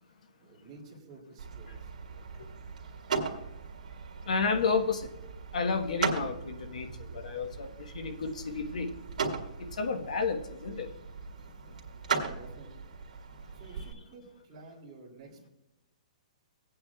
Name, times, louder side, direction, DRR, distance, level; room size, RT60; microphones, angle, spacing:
voice 1, 0.4-1.9 11.7-12.9 13.5-15.5, right 3 dB, 15° right, 2.5 m, -51 dB
sound 1, 1.4-13.9, right 5 dB, 80° right, 1.8 m, -38 dB
voice 2, 4.2-5.1 5.5-9.1 9.6-10.9 11.7-11.8, left 4 dB, 65° left, 1.2 m, -32 dB
18.5 x 8.9 x 2.3 m
hypercardioid pair, 180°, 4 cm